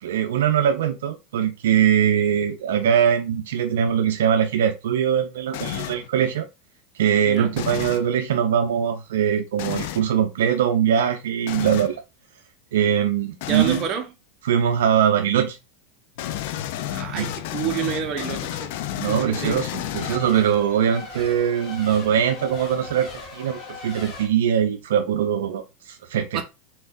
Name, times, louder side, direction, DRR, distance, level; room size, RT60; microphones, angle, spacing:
voice 1, 0.0-6.5 7.0-12.0 12.7-13.8 14.4-15.6 17.1-17.3 19.0-26.4, right 9 dB, 85° right, 0.5 m, -22 dB
sound 1, 5.5-6.1 7.5-8.1 9.6-10.1 11.5-12.0 13.4-13.9 16.2-20.5, left 12 dB, 65° left, 0.4 m, -31 dB
voice 2, 13.5-14.0 16.9-19.6 26.3-26.4, right 8 dB, 40° right, 1.1 m, -29 dB
Race car auto racing / Accelerating revving vroom / Mechanisms, 16.4-24.3, left 4 dB, 45° left, 1.4 m, -41 dB
4.1 x 3.9 x 2.5 m
supercardioid pair, 120°, 0 cm